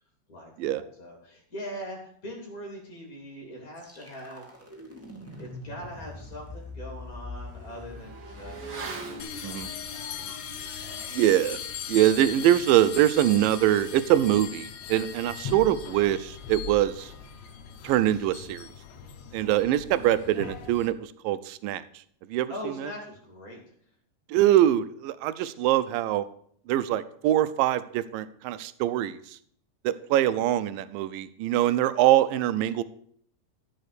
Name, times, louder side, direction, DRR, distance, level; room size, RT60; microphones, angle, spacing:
voice 1, 0.3-4.5 5.4-8.6 9.0-10.3 10.7-11.2 18.9-19.3 22.5-23.6, equal, 25° left, -1 dB, 2.7 m, -42 dB
sound 1, 3.8-13.6, left 2 dB, 5° right, 1.1 m, -45 dB
Motorcycle / Accelerating revving vroom, 5.6-5.7 6.1-16.1 16.4-16.5, right 4 dB, 50° right, 1.5 m, -46 dB
sound 2, 9.2-20.9, left 8 dB, 70° left, 1.6 m, -39 dB
voice 2, 11.1-11.6 11.9-17.1 17.8-18.7 19.3-21.8 22.3-22.5 22.8-22.9 24.3-26.2 26.7-29.2 29.8-32.8, right 13 dB, 85° right, 14 dB, 2.3 m, -23 dB
13.5 x 5.6 x 6.8 m, 0.64 s
omnidirectional pair, 4.0 m